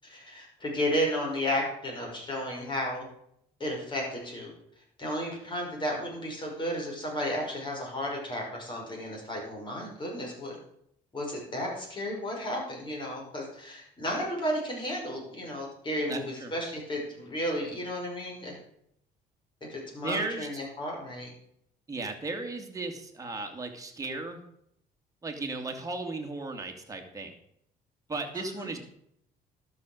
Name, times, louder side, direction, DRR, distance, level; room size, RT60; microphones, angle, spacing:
voice 1, 0.0-3.1 3.6-4.5 5.0-10.5 11.1-18.6 19.6-21.3 28.3-28.7, equal, 30° left, -1 dB, 5.8 m, -33 dB
voice 2, 16.1-16.5 20.0-20.5 21.9-24.4 25.2-27.3 28.1-28.8, right 3 dB, 20° right, 3 dB, 2.4 m, -35 dB
12.5 x 6.8 x 6.4 m, 0.72 s
cardioid pair, 110°, 17 cm